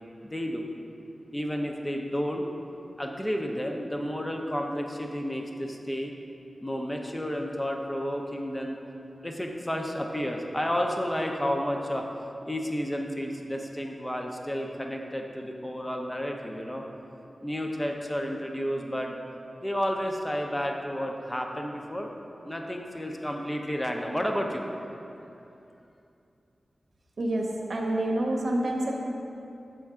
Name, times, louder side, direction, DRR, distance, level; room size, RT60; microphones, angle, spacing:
voice 1, 0.2-0.6 1.3-2.5 3.0-6.1 6.6-8.8 9.2-12.1 12.4-16.8 17.4-19.1 19.6-22.1 22.4-24.9, equal, 15° left, 2 dB, 0.6 m, -31 dB
voice 2, 27.2-28.9, right 1 dB, 75° right, 0 dB, 0.7 m, -27 dB
6.4 x 4.4 x 3.6 m, 2.8 s
wide cardioid pair, 60°, 0 cm